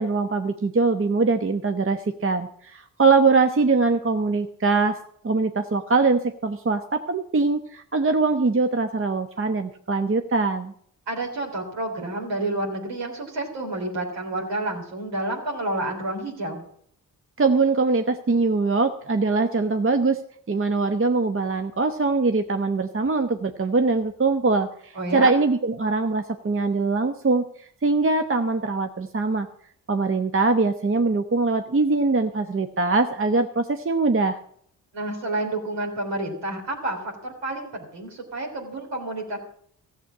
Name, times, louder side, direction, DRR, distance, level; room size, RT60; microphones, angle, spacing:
voice 1, 0.0-5.0 5.2-10.7 17.4-20.2 20.5-29.5 29.9-34.4, right 3 dB, 30° right, 7 dB, 1.0 m, -22 dB
voice 2, 11.1-16.6 24.9-25.4 34.9-39.4, right 2 dB, 70° right, 0 dB, 3.7 m, -29 dB
14.5 x 7.7 x 8.4 m, 0.63 s
hypercardioid pair, 40°, 44 cm